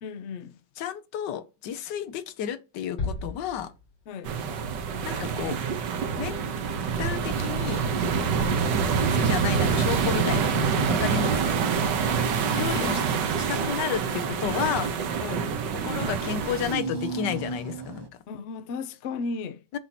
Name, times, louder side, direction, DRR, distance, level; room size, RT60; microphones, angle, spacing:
voice 1, 0.0-0.6 4.1-4.3 8.2-8.5 11.7-11.9 12.6-13.1 13.5-13.8 15.2-15.5 18.3-19.6, left 4 dB, 65° left, 0.7 m, -36 dB
voice 2, 0.8-3.7 5.0-5.6 6.2-6.4 7.0-7.8 9.0-10.6 10.9-11.6 12.5-13.0 13.4-14.9 15.8-18.1 19.7-19.8, left 9 dB, 80° left, 1.4 m, -31 dB
sound 1, 3.0-4.4, left 3 dB, 30° left, 1.3 m, -35 dB
sound 2, 4.3-16.7, right 6 dB, 80° right, 1.5 m, -26 dB
sound 3, 13.9-18.1, right 2 dB, 40° right, 0.3 m, -39 dB
7.1 x 2.7 x 5.8 m
omnidirectional pair, 1.9 m